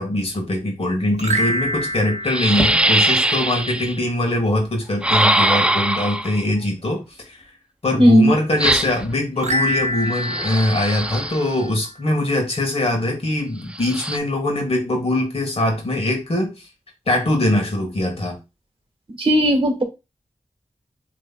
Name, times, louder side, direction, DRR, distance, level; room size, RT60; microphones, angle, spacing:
voice 1, 0.0-7.4 7.8-16.7 17.1-18.4, left 1 dB, 55° left, 2 dB, 1.5 m, -22 dB
sound 1, 1.1-3.6 9.4-12.0, equal, 80° right, 0.7 m, -27 dB
sound 2, 1.6-1.7 2.3-4.0 5.0-6.4 8.6-9.1 10.1-11.5 13.7-14.2, right 1 dB, 10° right, 0.3 m, -21 dB
voice 2, 8.0-8.3 19.2-19.8, right 1 dB, 50° right, 3 dB, 1.3 m, -15 dB
6.8 x 3.3 x 2.2 m, 0.26 s
wide cardioid pair, 75°, 12 cm